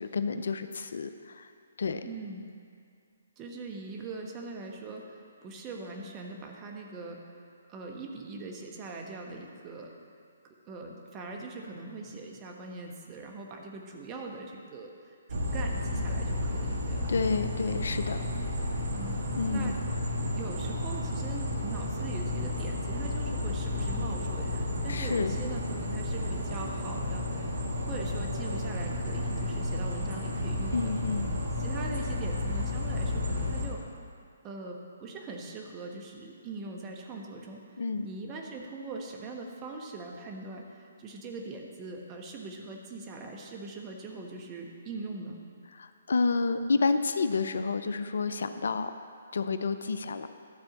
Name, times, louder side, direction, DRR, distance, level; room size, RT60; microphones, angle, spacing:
voice 1, 0.0-1.5 1.8-2.0 17.1-18.2 19.4-19.7 24.9-25.3 30.7-31.3 37.8-38.1 45.7-48.9 49.3-50.3, left 4 dB, 70° left, 10 dB, 0.5 m, -29 dB
voice 2, 2.0-2.4 3.4-7.2 7.7-9.9 10.4-17.1 18.9-19.2 19.5-19.8 20.4-30.9 31.6-33.8 34.4-37.6 38.0-45.4, right 3 dB, 25° right, 1 dB, 1.2 m, -41 dB
sound 1, 15.3-33.7, left 1 dB, 65° right, 1.5 m, -32 dB
12.5 x 4.4 x 7.2 m, 2.3 s
figure-of-eight pair, 140°, 0 cm